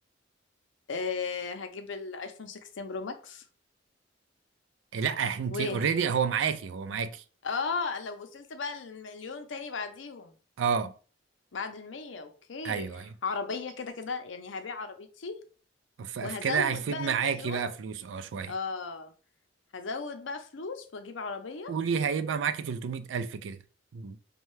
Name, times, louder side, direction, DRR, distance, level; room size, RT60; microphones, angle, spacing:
voice 1, 0.9-3.4 5.5-6.0 7.4-10.3 11.5-12.9 13.2-15.4 16.2-17.7 18.5-19.1 19.7-21.7, left 4 dB, 85° left, 0.6 m, -36 dB
voice 2, 4.9-7.2 10.6-10.9 12.6-13.1 16.0-18.5 21.7-23.6 23.9-24.2, right 6 dB, 80° right, 0.4 m, -30 dB
5.4 x 2.3 x 3.1 m
head